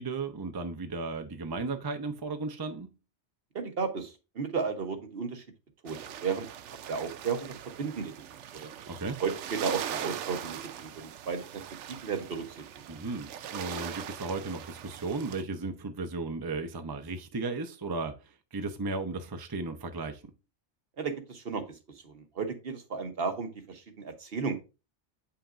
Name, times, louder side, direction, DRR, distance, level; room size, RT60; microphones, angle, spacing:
voice 1, 0.0-2.9 8.9-9.2 12.9-20.2, right 3 dB, 25° right, 0.6 m, -35 dB
voice 2, 3.5-5.4 5.8-6.5 6.9-8.1 8.5-8.7 9.2-12.7 21.0-21.8 22.0-24.5, right 5 dB, 60° right, 1.1 m, -34 dB
sound 1, 5.9-15.4, right 9 dB, 85° right, 0.9 m, -41 dB
8.5 x 5.7 x 2.5 m
omnidirectional pair, 1.2 m